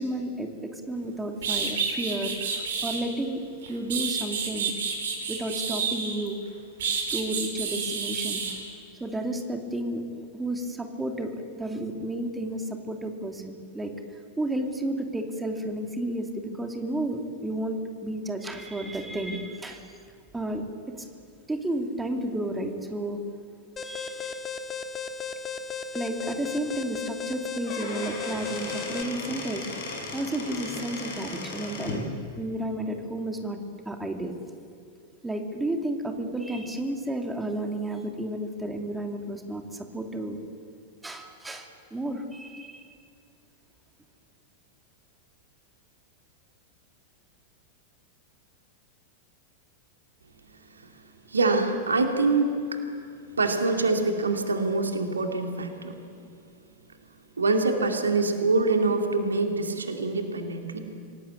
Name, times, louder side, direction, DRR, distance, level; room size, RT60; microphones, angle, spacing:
voice 1, 0.0-3.4 3.7-4.7 5.3-6.4 7.1-8.4 9.0-10.0 10.3-11.3 11.5-13.9 14.4-20.0 20.3-20.7 21.0-21.1 21.5-23.2 23.8-24.5 25.9-29.7 30.1-32.1 32.4-33.6 33.8-34.3 35.2-40.4 41.0-42.9, right 1 dB, 10° right, 3 dB, 2.6 m, -32 dB
sound 1, 1.0-1.1 1.4-3.0 3.6-6.3 6.8-8.6, right 6 dB, 60° right, 4.9 m, -30 dB
Alarm, 23.8-29.0, left 5 dB, 20° left, 1.5 m, -35 dB
Squeak / Wood, 27.5-32.1, left 2 dB, 50° left, 7.6 m, -36 dB
voice 2, 51.3-52.8 53.4-55.9 57.4-60.8, right 3 dB, 75° right, 4 dB, 2.5 m, -25 dB
26.5 x 18.0 x 8.4 m, 2.3 s
figure-of-eight pair, 90°, 0 cm